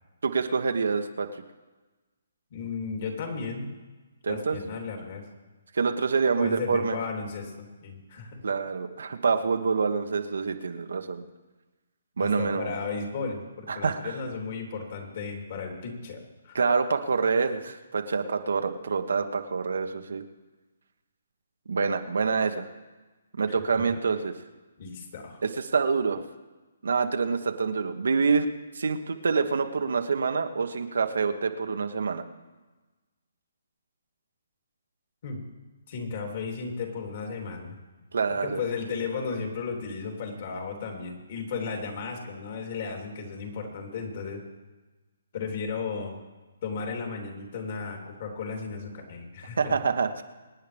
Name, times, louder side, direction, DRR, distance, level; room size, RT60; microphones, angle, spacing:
voice 1, 0.2-1.3 4.2-4.6 5.7-7.0 8.4-11.2 12.2-12.7 13.7-14.1 16.5-20.2 21.7-22.7 23.4-24.3 25.4-26.2 26.8-28.5 28.7-32.2 38.1-38.6 49.6-50.2, right 5 dB, 75° right, 6 dB, 1.3 m, -26 dB
voice 2, 2.5-3.7 4.3-5.2 6.4-7.5 7.8-8.4 12.2-16.6 23.5-24.0 24.8-25.4 35.2-35.4 35.9-37.8 38.3-44.4 45.3-46.2 46.6-49.7, left 5 dB, 50° left, 1 dB, 3.5 m, -35 dB
25.0 x 9.6 x 3.5 m, 1.2 s
hypercardioid pair, 150°, 0 cm